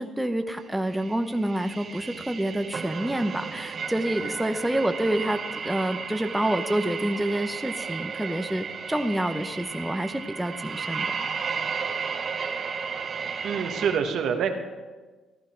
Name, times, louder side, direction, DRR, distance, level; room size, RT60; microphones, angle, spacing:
voice 1, 0.0-11.2, right 1 dB, 5° right, 7 dB, 0.7 m, -28 dB
sound 1, 0.8-14.0, right 5 dB, 45° right, 0.9 m, -34 dB
voice 2, 13.4-14.5, right 7 dB, 75° right, 5 dB, 1.3 m, -26 dB
15.0 x 11.5 x 4.5 m, 1.3 s
cardioid pair, 90°, 0 cm